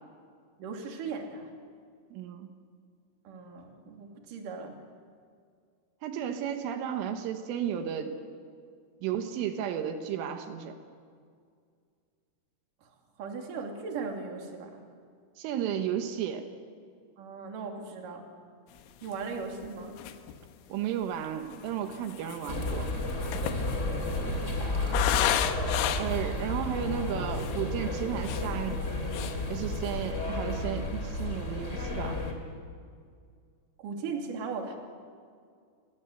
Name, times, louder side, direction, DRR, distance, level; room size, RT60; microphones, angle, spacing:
voice 1, 0.6-1.5 3.2-4.8 12.8-12.9 13.2-14.8 17.2-18.3 19.0-20.0 23.8-24.3 33.8-34.8, right 4 dB, 50° right, 3 dB, 3.8 m, -38 dB
voice 2, 2.1-2.5 6.0-8.1 9.0-10.8 15.4-16.5 20.7-22.9 25.9-28.8 29.5-32.2, right 9 dB, 85° right, 6 dB, 3.9 m, -33 dB
sound 1, 19.1-19.2 19.6-19.7 20.0-20.4 21.2-26.3 26.8-26.9 27.2-27.6 28.0-28.9 29.1-29.4 29.7-30.0, left 11 dB, 90° left, 3.8 m, -32 dB
sound 2, 22.5-32.3, left 2 dB, 20° left, 2.6 m, -32 dB
28.5 x 23.0 x 8.0 m, 2.2 s
omnidirectional pair, 5.6 m